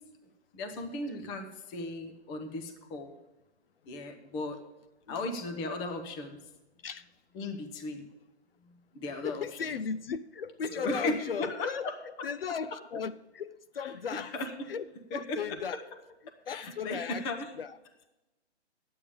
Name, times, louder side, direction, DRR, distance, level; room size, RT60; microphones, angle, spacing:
voice 1, 0.5-3.2 3.9-4.6 5.1-6.4 7.3-8.1 8.6-9.5 10.7-12.0 13.8-14.7 15.1-15.6 16.5-17.5, left 2 dB, 10° left, 6 dB, 0.6 m, -36 dB
voice 2, 9.2-11.9 12.2-14.3 14.7-15.8 16.5-17.3 17.6-17.8, left 6 dB, 60° left, 13 dB, 0.5 m, -36 dB
10.5 x 8.7 x 5.0 m, 1.0 s
figure-of-eight pair, 135°, 34 cm